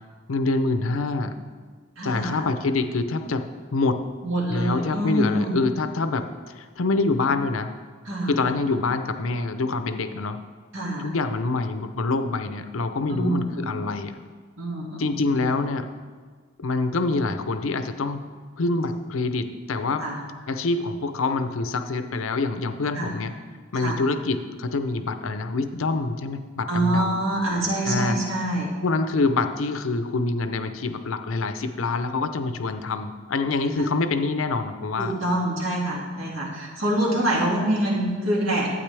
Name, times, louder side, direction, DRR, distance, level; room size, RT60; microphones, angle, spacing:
voice 1, 0.3-1.4 2.0-4.1 4.5-7.7 8.3-10.4 11.0-14.2 15.0-15.9 16.6-18.2 18.6-20.1 20.5-23.3 23.7-27.2 27.8-28.2 28.6-35.1, left 3 dB, 85° left, 9 dB, 0.6 m, -26 dB
voice 2, 2.0-2.5 4.2-5.6 8.0-8.4 10.7-11.1 13.1-13.8 14.6-15.5 20.0-20.2 22.9-23.1 23.7-24.0 26.7-28.7 33.7-33.9 35.0-38.7, right 1 dB, 85° right, -4 dB, 2.5 m, -26 dB
12.0 x 8.8 x 3.4 m, 1.5 s
head